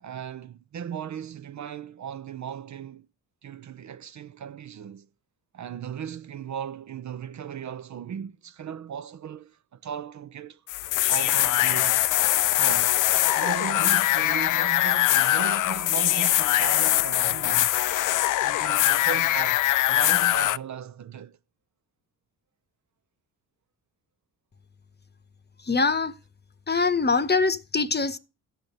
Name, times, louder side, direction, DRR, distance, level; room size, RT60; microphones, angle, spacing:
voice 1, 0.0-3.1 3.4-5.1 5.5-10.6 11.1-12.0 12.5-13.1 13.3-17.8 18.4-21.4, right 8 dB, 45° right, 0.7 m, -37 dB
sound 1, 10.7-20.6, left 15 dB, 50° left, 0.5 m, -22 dB
voice 2, 25.6-26.2 26.7-28.2, left 4 dB, 25° left, 1.0 m, -23 dB
14.0 x 5.7 x 6.7 m
hypercardioid pair, 50°, 40 cm